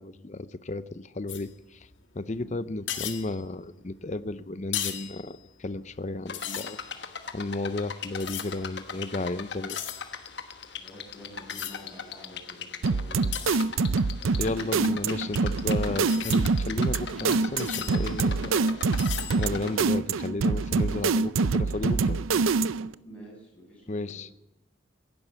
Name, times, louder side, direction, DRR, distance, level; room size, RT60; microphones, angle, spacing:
voice 1, 0.0-1.9 2.1-9.8 14.4-18.7 19.4-22.2 23.9-24.4, left 2 dB, 35° left, 15 dB, 0.6 m, -33 dB
sound 1, 1.3-2.0 2.3-2.5 2.7-4.2 4.6-6.1 6.3-9.0 9.3-14.3 15.1-20.2, left 10 dB, 70° left, 1.7 m, -39 dB
sound 2, 6.3-19.9, left 6 dB, 55° left, 1.3 m, -39 dB
voice 2, 10.6-14.6 23.0-24.2, equal, 5° left, -4 dB, 7.3 m, -48 dB
sound 3, 12.8-22.9, right 4 dB, 90° right, 0.5 m, -25 dB
15.5 x 11.5 x 8.1 m, 0.94 s
head